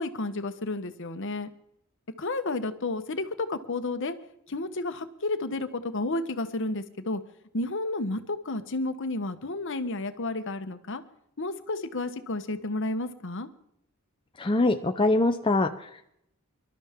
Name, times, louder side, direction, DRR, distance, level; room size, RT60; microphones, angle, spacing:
voice 1, 0.0-1.5 2.2-4.1 4.5-7.2 7.5-11.0 11.4-13.5, left 2 dB, 60° left, 9 dB, 1.1 m, -31 dB
voice 2, 14.4-16.1, left 2 dB, 25° left, 6 dB, 0.6 m, -24 dB
25.5 x 12.5 x 3.6 m, 0.74 s
head